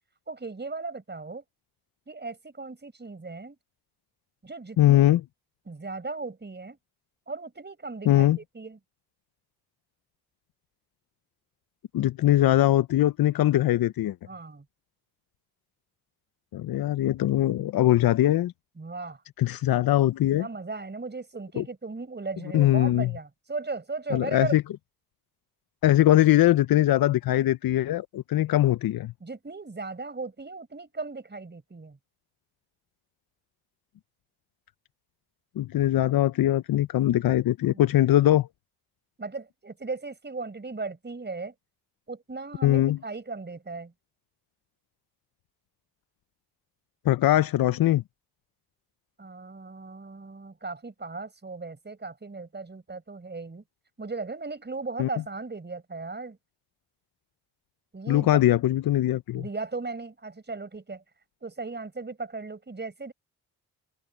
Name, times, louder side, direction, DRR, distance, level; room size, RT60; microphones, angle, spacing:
voice 1, 0.3-1.4 2.1-3.6 4.4-5.1 5.7-6.8 7.3-8.8 14.3-14.6 18.8-19.2 20.3-24.6 29.2-32.0 37.7-37.8 39.2-41.5 42.1-43.9 49.2-53.6 54.0-56.4 57.9-58.4 59.3-61.0 61.4-63.1, right 3 dB, 25° right, 5.7 m, -37 dB
voice 2, 4.8-5.2 8.1-8.4 11.9-14.2 16.5-18.5 19.4-20.5 21.6-21.7 22.5-23.1 24.1-24.6 25.8-29.1 35.6-38.5 42.6-43.0 47.0-48.0 55.0-55.1 58.1-59.4, left 14 dB, 60° left, 0.7 m, -21 dB
supercardioid pair, 65°, 39 cm